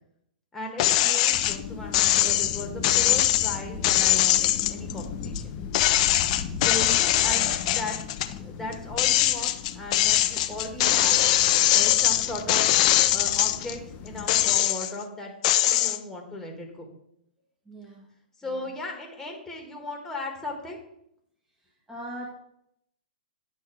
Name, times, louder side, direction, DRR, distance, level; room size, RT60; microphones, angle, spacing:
voice 1, 0.5-5.5 6.6-8.0 8.3-11.2 11.7-12.6 13.1-15.4 15.7-16.9 18.4-20.8, left 2 dB, 10° left, 1 dB, 1.8 m, -37 dB
sound 1, 0.8-1.6 1.9-5.4 5.7-8.3 8.7-13.7 14.2-15.0 15.4-16.0, left 14 dB, 45° left, 0.5 m, -22 dB
sound 2, 1.3-14.6, left 6 dB, 30° left, 0.9 m, -38 dB
voice 2, 17.6-18.1 18.4-18.7 21.6-22.3, right 1 dB, 10° right, -2 dB, 1.5 m, -41 dB
9.1 x 4.5 x 6.2 m, 0.75 s
hypercardioid pair, 135°, 5 cm